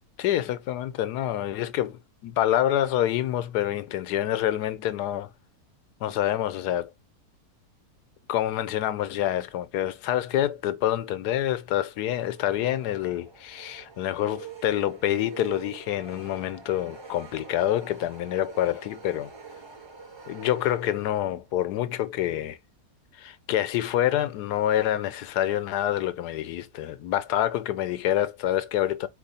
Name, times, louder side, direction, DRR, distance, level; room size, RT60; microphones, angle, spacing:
voice 1, 0.2-5.3 6.0-6.9 8.3-19.3 20.3-22.6 23.1-29.1, left 12 dB, 85° left, 1.2 m, -27 dB
sound 1, 12.3-21.4, right 6 dB, 25° right, 0.7 m, -46 dB
4.3 x 3.0 x 4.1 m
omnidirectional pair, 1.7 m